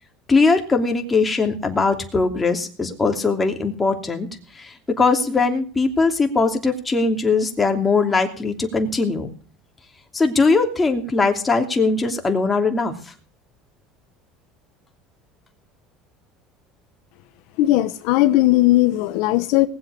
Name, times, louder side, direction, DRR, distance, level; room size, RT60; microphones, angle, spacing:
voice 1, 0.3-4.3 4.5-9.3 10.1-12.9, left 4 dB, 15° left, 2.9 m, -20 dB
voice 2, 17.6-19.7, left 16 dB, 75° left, 1.0 m, -17 dB
19.5 x 8.0 x 6.6 m
supercardioid pair, 120°, 0 cm